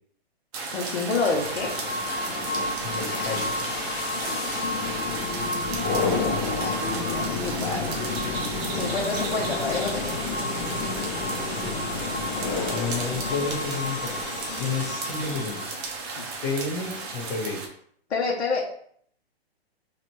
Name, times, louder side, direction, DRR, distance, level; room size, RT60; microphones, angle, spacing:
sound 1, 0.5-17.7, right 4 dB, 25° right, 0.6 m, -34 dB
voice 1, 0.7-1.7 4.1-4.4 6.6-7.9 8.7-10.1 16.2-16.3 18.1-18.7, left 4 dB, 90° left, -3 dB, 0.9 m, -28 dB
sound 2, 1.1-15.9, left 3 dB, 40° left, 1.1 m, -30 dB
voice 2, 2.8-3.4 11.5-11.8 12.7-15.8 16.4-17.7, left 4 dB, 55° left, 1 dB, 1.5 m, -31 dB
4.2 x 2.6 x 3.1 m, 0.63 s
hypercardioid pair, 140°, 32 cm